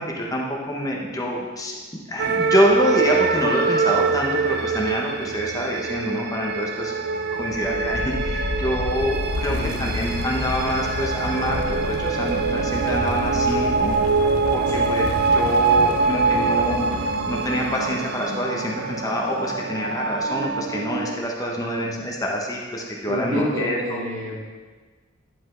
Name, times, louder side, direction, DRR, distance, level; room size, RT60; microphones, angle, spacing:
voice 1, 0.0-6.9 7.3-14.0 14.5-16.9 17.3-24.0, equal, 15° left, -2 dB, 1.0 m, -26 dB
sound 1, 2.2-21.2, right 4 dB, 50° right, 0.5 m, -24 dB
sound 2, 7.5-18.2, left 3 dB, 90° left, 0.5 m, -32 dB
voice 2, 9.3-9.9 14.7-14.9 21.6-21.9 23.1-24.3, equal, 80° right, -5 dB, 2.3 m, -28 dB
10.0 x 5.1 x 3.8 m, 1.4 s
head